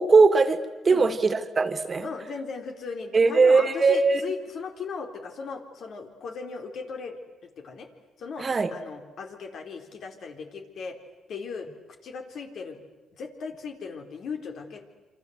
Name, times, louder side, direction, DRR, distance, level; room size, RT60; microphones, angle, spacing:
voice 1, 0.0-2.1 3.1-4.2 8.4-8.7, right 4 dB, 35° right, 9 dB, 2.1 m, -20 dB
voice 2, 2.0-7.2 7.4-7.9 8.2-11.0 11.3-11.7 12.0-12.8 13.1-14.8, left 5 dB, 65° left, 4 dB, 4.0 m, -37 dB
28.5 x 25.5 x 8.1 m, 1.2 s
cardioid pair, 90°, 0 cm